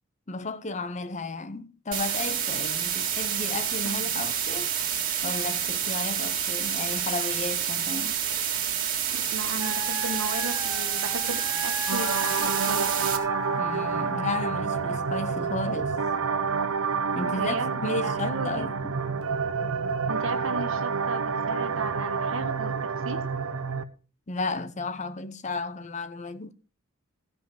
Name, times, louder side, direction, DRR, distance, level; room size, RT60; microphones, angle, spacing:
voice 1, 0.3-4.7 5.2-8.2 13.6-16.0 17.1-19.0 24.3-26.5, left 3 dB, 35° left, 0.7 m, -33 dB
TV static., 1.9-13.2, right 9 dB, 40° right, 2.2 m, -28 dB
voice 2, 9.1-12.9 17.3-18.7 20.1-22.7 23.0-23.2, right 2 dB, 65° right, 1.7 m, -35 dB
Wind instrument woodwind instrument, 9.6-14.5, left 1 dB, 15° right, 1.2 m, -36 dB
sound 1, 11.9-23.8, right 5 dB, 85° right, 0.8 m, -28 dB
15.5 x 5.4 x 6.9 m
head